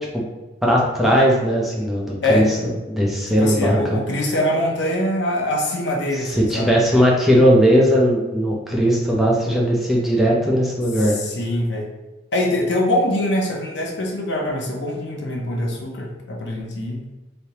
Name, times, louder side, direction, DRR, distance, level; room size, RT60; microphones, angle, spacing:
voice 1, 0.6-2.5 2.9-4.0 6.3-11.2, equal, ahead, -4 dB, 0.5 m, -18 dB
voice 2, 3.4-6.7 11.0-11.9 12.3-17.0, left 1 dB, 70° left, 0 dB, 0.7 m, -23 dB
3.2 x 2.7 x 2.8 m, 1.1 s
head